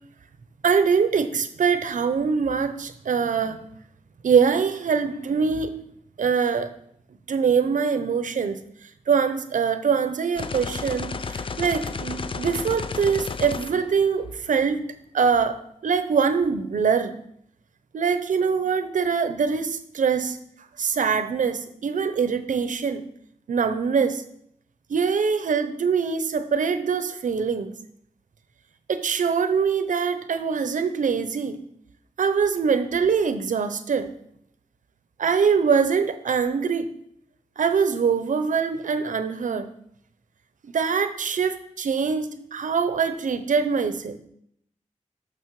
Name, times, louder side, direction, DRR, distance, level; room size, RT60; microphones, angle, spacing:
voice 1, 0.6-3.6 4.2-5.8 6.2-6.7 7.3-8.6 9.1-14.8 15.1-15.6 15.8-17.1 17.9-20.4 20.8-23.0 23.5-24.2 24.9-27.7 28.9-31.6 32.2-34.1 35.2-36.9 37.6-39.7 40.6-44.2, right 6 dB, 85° right, 10 dB, 0.8 m, -23 dB
sound 1, 10.4-14.6, left 4 dB, 45° left, 0.5 m, -32 dB
12.5 x 6.4 x 4.8 m, 0.72 s
wide cardioid pair, 130°, 13 cm